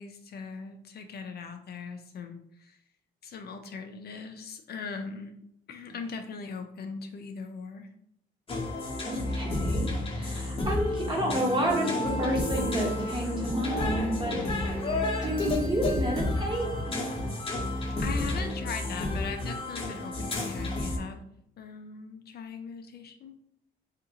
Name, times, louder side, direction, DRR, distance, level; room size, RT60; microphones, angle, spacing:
voice 1, 0.0-2.8 3.2-5.4 5.7-7.9 14.3-14.6 18.0-21.2 21.6-23.4, left 5 dB, 55° left, 5 dB, 0.4 m, -40 dB
sound 1, 8.5-21.0, left 2 dB, 30° left, 0.8 m, -31 dB
voice 2, 9.0-14.7 15.2-16.7, right 1 dB, 25° right, -1 dB, 1.0 m, -30 dB
sound 2, 11.1-19.7, right 1 dB, 60° right, 1.3 m, -41 dB
2.8 x 2.5 x 2.8 m, 0.75 s
cardioid pair, 90°, 20 cm